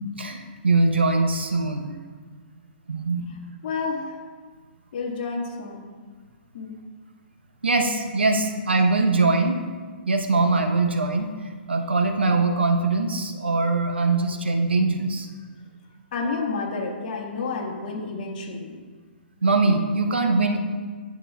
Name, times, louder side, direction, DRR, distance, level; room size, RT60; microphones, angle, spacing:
voice 1, 0.2-1.9 2.9-3.3 7.6-9.6 10.1-15.3 19.4-20.6, right 3 dB, 85° right, 5 dB, 0.8 m, -22 dB
voice 2, 3.6-4.2 4.9-5.8 6.5-6.7 16.1-18.8, left 4 dB, 50° left, 0 dB, 1.6 m, -30 dB
11.0 x 7.0 x 2.3 m, 1.5 s
figure-of-eight pair, 125°, 6 cm